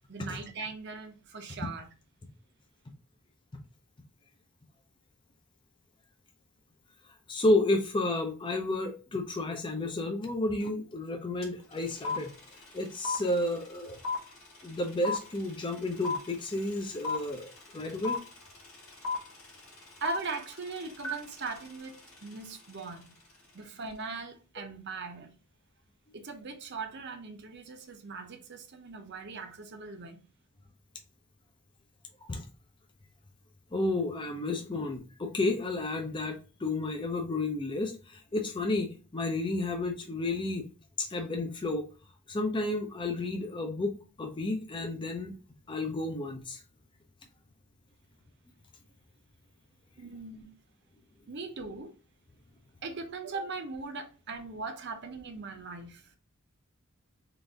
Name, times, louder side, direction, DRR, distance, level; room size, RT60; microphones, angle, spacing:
voice 1, 0.1-1.9 20.0-23.1 23.5-25.3 26.1-30.2 50.0-50.5 51.3-51.9 52.8-56.1, right 4 dB, 55° right, 0.7 m, -40 dB
voice 2, 7.3-12.3 12.7-14.0 14.6-18.2 32.2-32.4 33.7-40.7 41.0-41.9 42.3-45.3 45.7-46.6, left 2 dB, 25° left, 0.6 m, -31 dB
sound 1, 11.4-11.5 11.7-22.9, left 4 dB, 90° left, 1.9 m, -36 dB
3.9 x 2.5 x 3.4 m
head